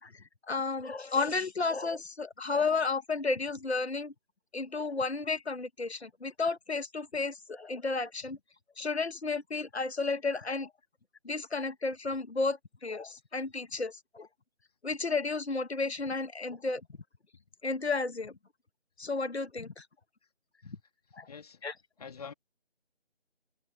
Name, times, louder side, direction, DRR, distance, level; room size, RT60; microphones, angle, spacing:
voice 1, 0.0-4.1 4.5-8.4 8.8-10.7 11.2-14.3 14.8-16.8 17.6-18.3 19.0-19.9 20.6-20.8 21.1-21.3 21.6-21.7, left 4 dB, 75° left, 1.9 m, -32 dB
voice 2, 21.3-21.6 22.0-22.3, left 6 dB, 35° left, 2.8 m, -45 dB
figure-of-eight pair, 165°, 33 cm